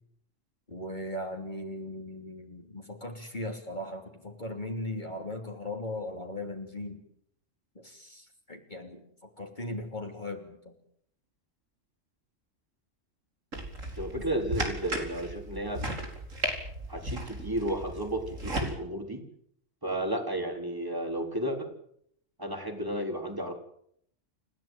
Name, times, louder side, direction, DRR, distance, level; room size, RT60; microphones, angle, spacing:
voice 1, 0.7-7.0 7.7-10.7 14.1-14.2, left 1 dB, 35° left, 2 dB, 3.4 m, -38 dB
sound 1, 13.5-18.7, right 1 dB, 85° right, 5.0 m, -35 dB
voice 2, 14.0-15.8 16.9-19.2 19.8-21.7 22.4-23.5, right 1 dB, 15° right, 4 dB, 3.9 m, -33 dB
29.5 x 15.5 x 9.1 m, 0.70 s
omnidirectional pair, 1.3 m